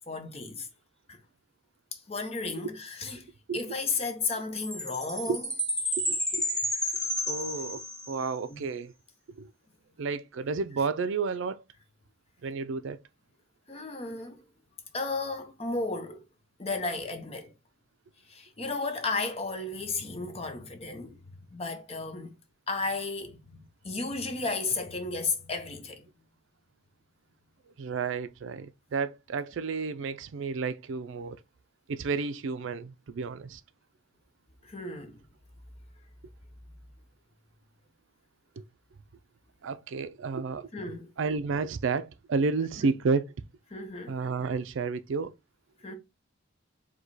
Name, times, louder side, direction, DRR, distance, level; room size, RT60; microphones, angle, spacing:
voice 1, 0.1-0.7 1.1-1.2 1.9-5.5 8.5-8.6 13.7-14.4 14.9-16.2 16.6-17.5 18.3-22.3 22.7-26.1 34.6-35.2 40.7-41.1 43.7-44.2 45.8-45.9, left 3 dB, 30° left, 0.7 m, -34 dB
Chime, 4.6-8.3, equal, 5° left, 0.9 m, -31 dB
voice 2, 6.0-6.4 7.3-8.9 9.3-9.5 10.0-11.6 12.4-13.0 27.8-31.4 31.9-33.6 38.6-38.7 39.6-40.7 41.2-43.2 44.1-45.3, right 4 dB, 70° right, 0.4 m, -31 dB
4.9 x 2.2 x 4.0 m
head